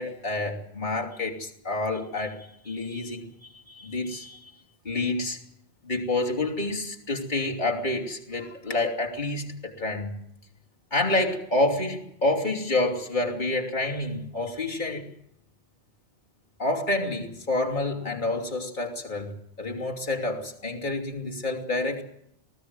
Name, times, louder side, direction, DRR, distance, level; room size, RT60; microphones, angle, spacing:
voice 1, 0.0-3.3 3.7-4.5 4.8-5.4 5.8-10.1 10.9-15.1 16.6-22.0, left 2 dB, 45° left, -1 dB, 3.1 m, -28 dB
19.5 x 16.0 x 9.6 m, 0.75 s
omnidirectional pair, 1.2 m